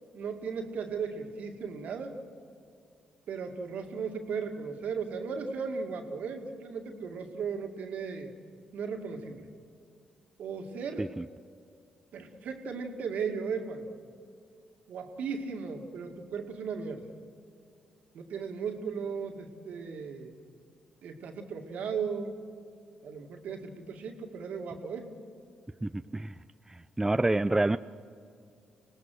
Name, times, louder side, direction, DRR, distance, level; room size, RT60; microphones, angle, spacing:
voice 1, 0.1-2.1 3.3-8.3 8.7-9.5 10.4-11.1 12.1-13.9 14.9-17.1 18.1-20.3 21.0-22.3 23.0-25.1, right 5 dB, 70° right, 4 dB, 2.2 m, -36 dB
voice 2, 25.8-26.3 26.7-27.8, right 2 dB, 15° right, 12 dB, 0.5 m, -28 dB
25.0 x 18.5 x 6.5 m, 2.3 s
hypercardioid pair, 45°, 3 cm